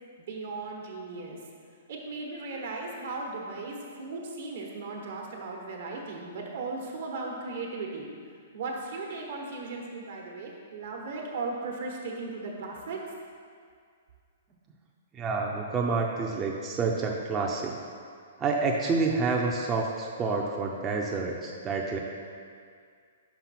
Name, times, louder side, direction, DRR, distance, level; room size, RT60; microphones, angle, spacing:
voice 1, 0.2-1.4 1.9-8.1 8.5-13.0, right 3 dB, 65° right, 0 dB, 1.2 m, -37 dB
voice 2, 15.1-17.8 18.4-22.0, right 4 dB, 20° right, -1 dB, 0.5 m, -28 dB
5.8 x 5.3 x 4.1 m, 2.2 s
hypercardioid pair, 135°, 0 cm